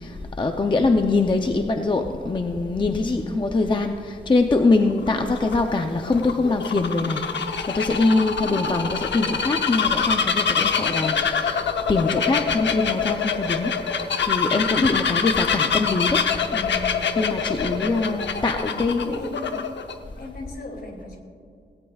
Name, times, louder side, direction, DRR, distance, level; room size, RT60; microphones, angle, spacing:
voice 1, 0.0-7.2 7.7-13.7 14.2-16.2 16.5-19.2, left 3 dB, 25° left, 5 dB, 0.5 m, -23 dB
Bird vocalization bird call bird song, 4.9-19.9, left 6 dB, 80° left, 0.8 m, -25 dB
voice 2, 17.7-18.0 18.6-19.7 20.2-21.2, left 1 dB, 60° left, 1 dB, 2.5 m, -38 dB
17.5 x 17.5 x 2.4 m, 2.3 s
wide cardioid pair, 165°, 18 cm